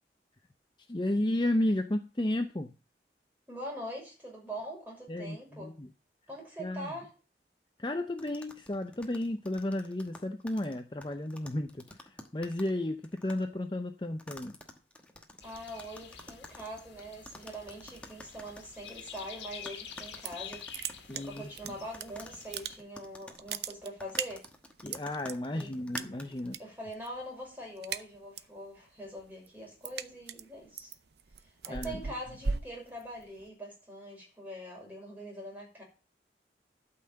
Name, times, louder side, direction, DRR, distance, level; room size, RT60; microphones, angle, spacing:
voice 1, 0.9-2.7 5.1-5.9 6.6-6.9 7.8-14.5 21.1-21.7 24.8-26.6 31.7-32.0, left 1 dB, 25° left, 6 dB, 0.7 m, -33 dB
voice 2, 3.5-5.7 6.3-7.1 15.4-24.5 25.5-30.9 31.4-35.8, equal, 10° right, -2 dB, 6.0 m, -43 dB
sound 1, 8.2-12.8 13.0-13.4 14.2-19.3 19.6-21.6 21.9-26.5, left 1 dB, 5° left, 1.2 m, -50 dB
sound 2, 15.4-22.8, left 8 dB, 85° left, 1.8 m, -48 dB
sound 3, 20.0-20.5 20.7-22.0 22.4-23.0 23.3-25.3 25.9-26.6 26.9-27.2 27.5-28.6 29.0-33.5, right 6 dB, 70° right, 0.7 m, -37 dB
12.5 x 5.8 x 7.7 m, 0.35 s
head